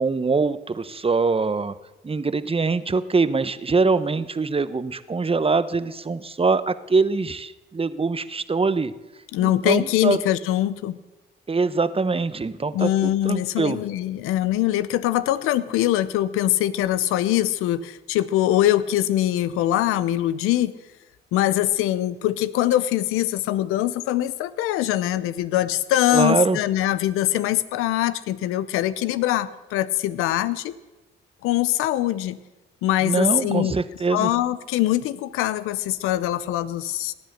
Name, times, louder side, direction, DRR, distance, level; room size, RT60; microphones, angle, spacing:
voice 1, 0.0-1.7 2.0-8.9 9.4-10.2 11.5-13.8 26.1-26.6 33.0-34.3, right 4 dB, 25° right, 14 dB, 1.0 m, -23 dB
voice 2, 9.3-11.0 12.7-20.7 21.3-30.7 31.4-32.4 32.8-33.8 34.1-37.1, left 13 dB, 90° left, 15 dB, 0.7 m, -23 dB
18.0 x 10.5 x 6.6 m, 1.1 s
supercardioid pair, 55°, 21 cm